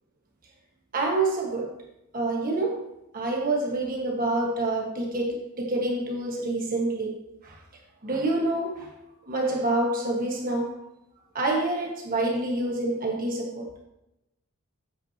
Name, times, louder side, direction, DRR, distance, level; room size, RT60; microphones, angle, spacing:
voice 1, 0.9-1.7 2.1-2.8 3.1-7.1 7.4-7.5 8.0-8.9 9.3-10.8 11.3-13.6, right 2 dB, 40° right, 1.5 m, -27 dB
8.9 x 8.7 x 2.9 m
head